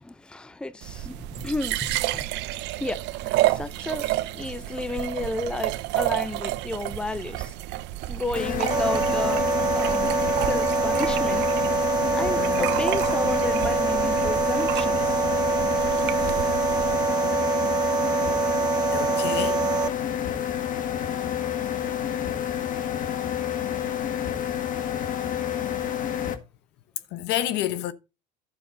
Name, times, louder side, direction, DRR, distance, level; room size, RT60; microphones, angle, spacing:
voice 1, 0.0-2.2 2.8-7.5 8.1-10.1 10.4-11.5 12.1-15.2, left 2 dB, 5° left, 0.7 m, -32 dB
sound 1, 0.8-17.0, right 15 dB, 60° right, 0.8 m, -31 dB
sound 2, 8.4-26.3, left 10 dB, 40° left, 1.7 m, -29 dB
sound 3, 8.7-19.9, right 6 dB, 20° right, 1.2 m, -25 dB
voice 2, 12.4-12.7 18.9-19.6 27.1-27.9, left 13 dB, 60° left, 1.0 m, -29 dB
12.0 x 6.7 x 4.0 m
supercardioid pair, 95°, 20 cm